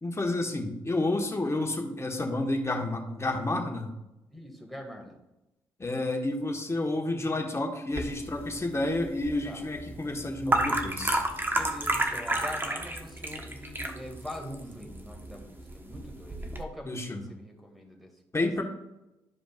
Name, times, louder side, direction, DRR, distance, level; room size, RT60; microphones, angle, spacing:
voice 1, 0.0-3.9 5.8-11.2 16.9-17.2 18.3-18.6, left 2 dB, 25° left, 3 dB, 1.5 m, -30 dB
voice 2, 4.3-5.2 9.4-9.7 11.6-18.1, left 1 dB, ahead, 0 dB, 2.3 m, -43 dB
sound 1, 7.9-16.6, right 1 dB, 20° right, 1.2 m, -32 dB
12.0 x 5.0 x 2.5 m, 0.94 s
hypercardioid pair, 45°, 11 cm